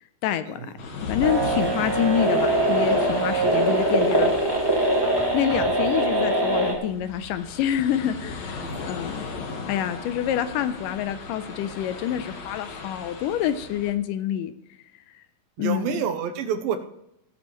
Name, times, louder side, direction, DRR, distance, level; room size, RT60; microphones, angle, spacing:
voice 1, 0.2-0.6 1.0-4.3 5.3-9.3 9.7-14.5 15.6-16.0, left 10 dB, 80° left, 11 dB, 2.1 m, -27 dB
sound 1, 0.8-13.9, left 4 dB, 55° left, 2.4 m, -37 dB
sound 2, 1.2-6.7, right 1 dB, 25° right, 0.5 m, -22 dB
voice 2, 8.6-9.0 15.6-16.8, right 8 dB, 90° right, 7 dB, 2.6 m, -29 dB
16.0 x 12.0 x 3.1 m, 0.80 s
omnidirectional pair, 4.0 m